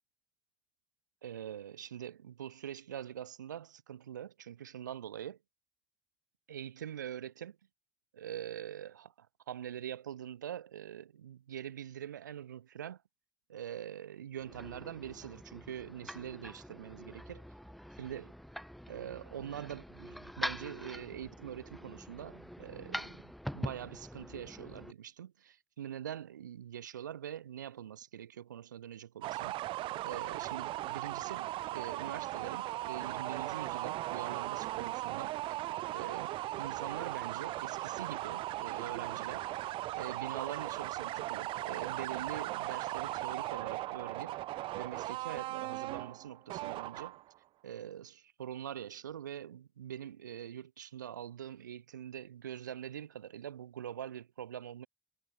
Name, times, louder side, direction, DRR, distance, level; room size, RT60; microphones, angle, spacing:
voice 1, 1.2-5.4 6.5-7.6 8.1-13.0 13.5-17.4 18.0-18.3 18.9-29.6 30.0-35.6 35.9-39.4 39.9-44.4 44.7-47.2 47.6-54.9, right 10 dB, 85° right, 1.3 m, -44 dB
sound 1, 14.3-24.9, equal, ahead, 0.4 m, -44 dB
sound 2, 29.2-47.4, right 17 dB, 65° right, 0.5 m, -38 dB
figure-of-eight pair, 45°, 10 cm